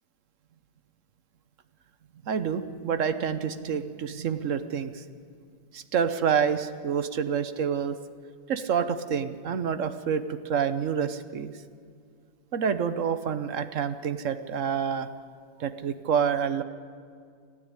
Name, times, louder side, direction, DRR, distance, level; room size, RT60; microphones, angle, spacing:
voice 1, 2.2-5.0 5.7-8.0 8.5-11.5 12.5-15.1 15.6-16.6, right 7 dB, 50° right, 11 dB, 1.0 m, -28 dB
29.5 x 12.5 x 9.8 m, 2.2 s
omnidirectional pair, 2.2 m